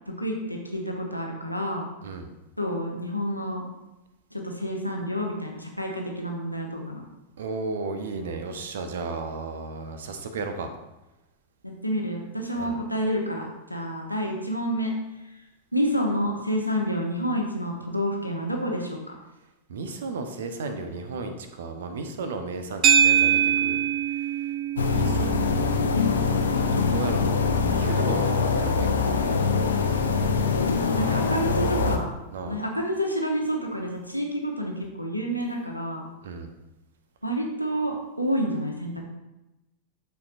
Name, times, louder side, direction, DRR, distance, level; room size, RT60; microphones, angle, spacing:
voice 1, 0.2-1.9 2.6-3.6 4.3-7.0 11.6-14.9 15.7-19.0 29.3-29.4 30.4-32.1 32.4-36.1 37.2-39.0, equal, 90° left, 0 dB, 1.0 m, -29 dB
voice 2, 7.4-10.7 12.5-12.7 19.7-23.8 24.1-24.5 24.9-25.9 26.6-29.4 31.0-31.3 32.3-32.6 36.2-36.5, right 3 dB, 60° right, 7 dB, 0.8 m, -34 dB
sound 1, 22.8-31.3, right 8 dB, 30° right, 0.7 m, -27 dB
sound 2, 24.8-32.0, left 5 dB, 70° left, 0.6 m, -23 dB
12.0 x 4.7 x 2.6 m, 0.99 s
figure-of-eight pair, 90°, 0 cm